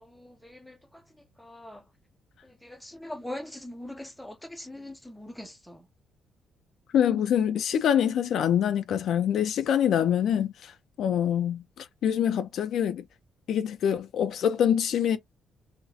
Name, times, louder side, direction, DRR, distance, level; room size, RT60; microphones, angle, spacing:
voice 1, 0.0-1.9 2.4-5.9, left 1 dB, 5° left, 0.6 m, -42 dB
voice 2, 6.9-13.0 13.5-15.2, left 9 dB, 70° left, 0.3 m, -25 dB
2.6 x 2.0 x 2.4 m
cardioid pair, 90°, 0 cm